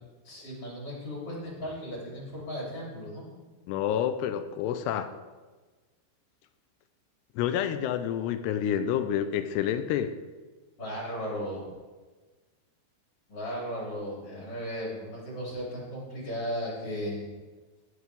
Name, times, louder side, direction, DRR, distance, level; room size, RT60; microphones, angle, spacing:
voice 1, 0.2-3.3 10.8-11.7 13.3-17.2, equal, 35° left, -5 dB, 4.1 m, -36 dB
voice 2, 3.7-5.1 7.4-10.1, left 9 dB, 85° left, 10 dB, 2.7 m, -28 dB
16.5 x 8.1 x 3.5 m, 1.3 s
omnidirectional pair, 4.9 m